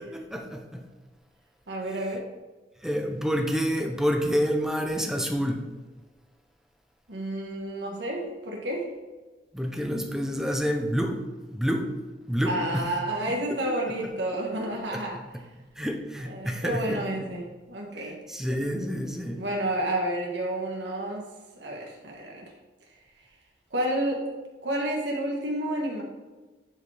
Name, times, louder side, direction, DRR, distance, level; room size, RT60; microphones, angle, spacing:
voice 1, 0.1-0.8 2.8-5.6 9.5-11.2 11.5-11.9 12.3-12.8 13.5-13.8 14.9-15.0 15.8-17.3 18.3-19.4, equal, 5° right, 3 dB, 0.8 m, -28 dB
voice 2, 1.7-2.2 7.1-8.9 12.4-15.2 16.2-18.1 19.3-21.3 21.6-22.4 23.7-24.2 24.6-26.0, right 1 dB, 90° right, -1 dB, 1.5 m, -30 dB
10.5 x 4.8 x 3.5 m, 1.2 s
head